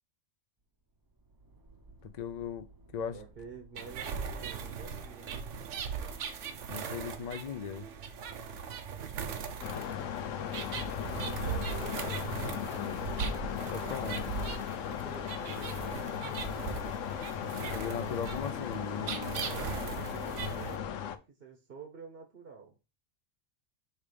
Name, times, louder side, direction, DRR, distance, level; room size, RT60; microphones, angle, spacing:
sound 1, 0.6-17.9, right 2 dB, 20° right, 0.7 m, -58 dB
voice 1, 2.0-2.7 2.9-3.2 6.7-7.9 12.7-13.0 13.7-14.2 17.5-19.4, left 7 dB, 65° left, 0.4 m, -38 dB
voice 2, 3.1-5.4 11.1-12.3 14.2-14.3 14.6-16.4 20.0-22.8, right 5 dB, 50° right, 1.1 m, -49 dB
Parrots talking, 3.8-20.8, right 6 dB, 75° right, 1.1 m, -39 dB
sound 2, 9.6-21.2, left 9 dB, 85° left, 1.0 m, -37 dB
5.6 x 3.4 x 5.0 m
omnidirectional pair, 1.3 m